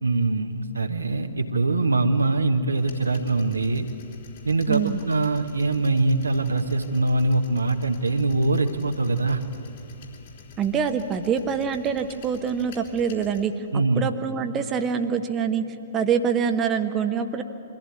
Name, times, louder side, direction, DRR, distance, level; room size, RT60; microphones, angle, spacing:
voice 1, 0.0-3.9 4.4-9.4 13.7-14.1, right 3 dB, 75° right, 6 dB, 1.3 m, -23 dB
sound 1, 2.8-13.5, left 5 dB, 55° left, 3.6 m, -47 dB
voice 2, 4.7-5.0 10.6-13.6 14.0-15.6 15.9-17.4, right 7 dB, 20° right, 7 dB, 1.0 m, -25 dB
23.5 x 15.0 x 8.6 m, 2.9 s
figure-of-eight pair, 115°, 0 cm